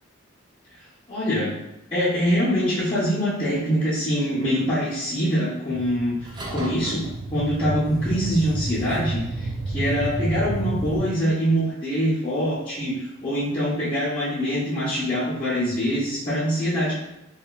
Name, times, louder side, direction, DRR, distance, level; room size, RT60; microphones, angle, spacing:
voice 1, 1.1-1.6 1.9-6.2 6.5-12.9 13.2-16.9, equal, 25° left, -13 dB, 0.6 m, -24 dB
sound 1, 5.7-11.0, right 2 dB, 20° right, 0.3 m, -30 dB
2.9 x 2.2 x 2.2 m, 0.86 s
head